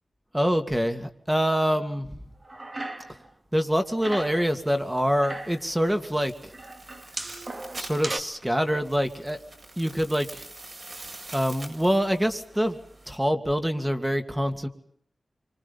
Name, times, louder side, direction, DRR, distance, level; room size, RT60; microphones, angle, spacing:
voice 1, 0.3-2.1 3.5-6.5 7.8-9.4 9.8-10.5 11.3-12.8 13.1-14.7, equal, 10° right, 7 dB, 2.6 m, -25 dB
sound 1, 2.4-3.3 3.6-4.5 5.0-5.7 6.5-8.2, right 2 dB, 40° right, 2.4 m, -36 dB
sound 2, 4.0-13.2, right 2 dB, 55° right, 7.4 m, -46 dB
28.0 x 25.5 x 5.6 m, 0.65 s
wide cardioid pair, 95°, 0 cm